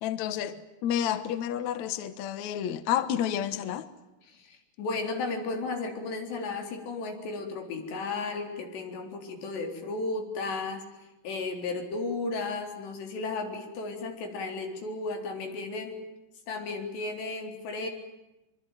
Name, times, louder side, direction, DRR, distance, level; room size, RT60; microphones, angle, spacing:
voice 1, 0.0-3.9, left 10 dB, 60° left, 2.0 m, -30 dB
voice 2, 4.3-10.8 11.2-16.0 16.5-17.9, left 3 dB, 80° left, 6.0 m, -34 dB
24.5 x 24.5 x 9.2 m
omnidirectional pair, 4.9 m